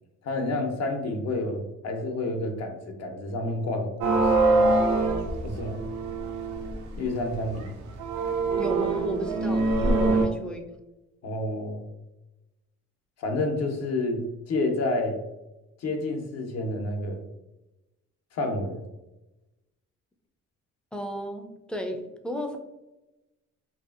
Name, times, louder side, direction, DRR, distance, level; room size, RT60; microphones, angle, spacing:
voice 1, 0.2-4.3 5.4-5.8 6.9-7.7 10.0-10.2 11.2-11.8 13.2-15.2 15.8-17.2 18.3-18.8, left 2 dB, 60° left, 3 dB, 0.6 m, -29 dB
sound 1, 4.0-7.0 7.4-7.5 8.0-10.3, right 3 dB, 75° right, 0.5 m, -24 dB
voice 2, 8.6-10.6 20.9-22.6, equal, 5° left, 3 dB, 0.3 m, -33 dB
2.7 x 2.4 x 2.3 m, 0.98 s
cardioid pair, 90°, 30 cm